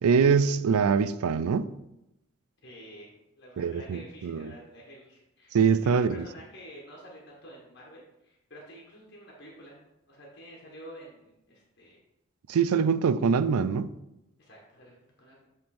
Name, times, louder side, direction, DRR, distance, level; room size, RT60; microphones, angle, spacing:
voice 1, 0.0-1.7 3.6-4.5 5.5-6.2 12.5-13.9, right 6 dB, 85° right, 0.4 m, -24 dB
voice 2, 2.6-9.8 10.1-12.0 14.4-15.5, equal, 55° left, 1.5 m, -49 dB
7.7 x 3.7 x 4.3 m
head